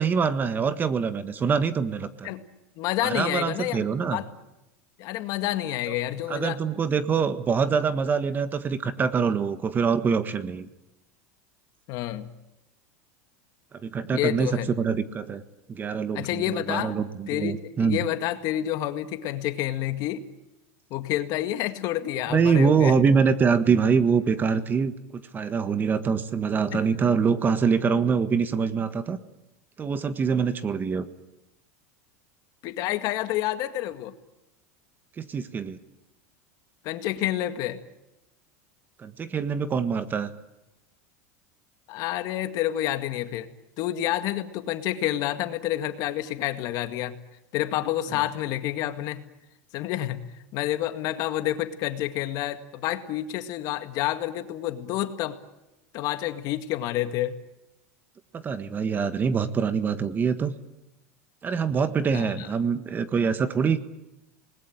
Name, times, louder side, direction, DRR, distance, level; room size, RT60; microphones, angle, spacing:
voice 1, 0.0-2.3 3.0-4.2 5.9-6.0 6.3-10.7 13.7-15.4 15.7-18.0 22.3-29.2 29.8-31.1 35.2-35.8 39.0-40.3 58.3-60.5 61.4-63.8, right 6 dB, 25° right, 11 dB, 1.5 m, -24 dB
voice 2, 2.8-4.3 5.0-6.6 11.9-12.3 14.0-14.7 16.1-17.0 17.3-20.2 20.9-23.0 26.7-26.9 32.6-34.1 36.8-37.8 41.9-43.5 43.8-47.1 47.5-49.2 49.7-50.2 50.5-55.4 55.9-57.3 62.1-62.5, left 13 dB, 50° left, 8 dB, 2.0 m, -29 dB
28.5 x 20.5 x 8.9 m, 0.93 s
supercardioid pair, 120°, 8 cm